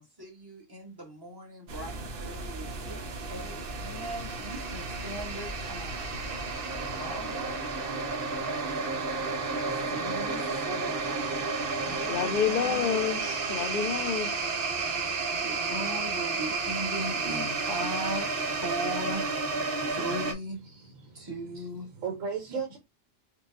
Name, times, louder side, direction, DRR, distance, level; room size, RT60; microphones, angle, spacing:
voice 1, 0.0-3.0 3.3-6.2 6.9-8.7 9.5-11.6 11.8-12.9 15.4-19.3 19.9-20.6 21.1-21.9, right 1 dB, 20° right, 1.1 m, -39 dB
sound 1, 1.7-20.3, right 4 dB, 55° right, 0.8 m, -32 dB
voice 2, 12.1-14.3, left 8 dB, 70° left, 0.4 m, -29 dB
voice 3, 20.7-21.3 21.9-22.8, right 6 dB, 70° right, 1.1 m, -36 dB
4.6 x 2.2 x 2.4 m
omnidirectional pair, 1.4 m